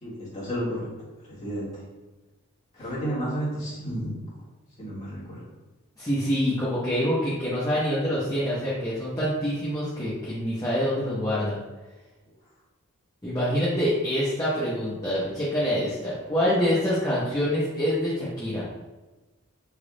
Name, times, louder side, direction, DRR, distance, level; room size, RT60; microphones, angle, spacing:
voice 1, 0.0-0.9 1.3-1.8 2.8-4.2 4.8-5.4, equal, 30° left, -8 dB, 1.4 m, -31 dB
voice 2, 6.0-11.6 13.2-18.6, equal, 15° left, -9 dB, 0.6 m, -26 dB
3.4 x 2.4 x 3.7 m, 1.2 s
head